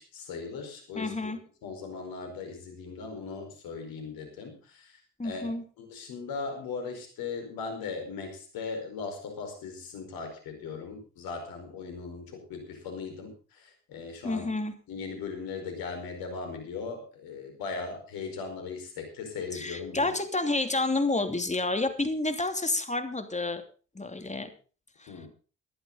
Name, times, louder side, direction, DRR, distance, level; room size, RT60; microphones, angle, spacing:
voice 1, 0.0-1.3 1.6-5.5 5.8-14.5 14.9-20.1 25.1-25.3, left 4 dB, 75° left, 4 dB, 5.0 m, -38 dB
voice 2, 0.9-1.4 5.2-5.6 14.2-14.7 19.5-23.6 23.9-24.5 25.0-25.1, left 2 dB, 20° left, 7 dB, 3.0 m, -29 dB
18.5 x 11.0 x 4.0 m, 0.37 s
hypercardioid pair, 45°, 35 cm